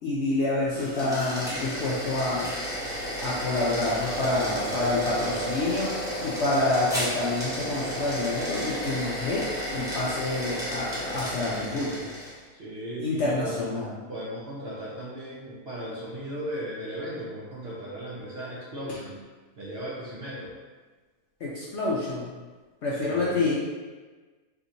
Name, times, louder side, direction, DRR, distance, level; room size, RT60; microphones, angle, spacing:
voice 1, 0.0-2.5 3.2-5.9 6.2-9.5 9.7-12.1 13.0-13.9 21.4-22.3 22.8-23.5, left 2 dB, 65° left, -6 dB, 0.7 m, -28 dB
sound 1, 0.6-12.4, equal, 5° right, 0.6 m, -32 dB
voice 2, 4.4-5.5 12.6-19.2 19.6-20.5 23.0-23.5, equal, 55° right, -8 dB, 0.7 m, -37 dB
3.4 x 2.8 x 2.5 m, 1.3 s
omnidirectional pair, 1.6 m